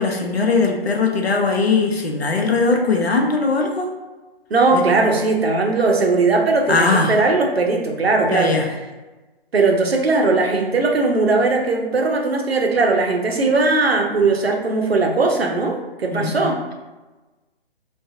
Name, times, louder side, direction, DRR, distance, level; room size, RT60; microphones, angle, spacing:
voice 1, 0.0-3.9 4.7-4.8 6.7-7.2 8.3-8.7 16.1-16.5, left 4 dB, 80° left, 2 dB, 0.6 m, -19 dB
voice 2, 4.5-8.6 9.5-16.6, right 3 dB, 80° right, 2 dB, 0.5 m, -19 dB
2.4 x 2.3 x 2.6 m, 1.2 s
figure-of-eight pair, 135°, 31 cm